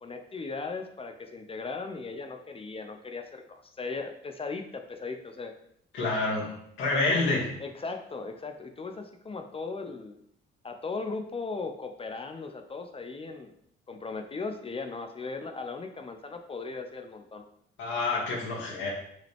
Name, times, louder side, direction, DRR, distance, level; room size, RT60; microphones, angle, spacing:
voice 1, 0.0-5.5 6.9-7.2 7.6-10.2 10.6-13.5 13.9-17.4, left 4 dB, 30° left, 6 dB, 0.7 m, -37 dB
voice 2, 5.9-7.5 17.8-18.9, left 3 dB, 80° left, -4 dB, 2.5 m, -28 dB
6.2 x 5.1 x 3.5 m, 0.72 s
cardioid pair, 90°, 20 cm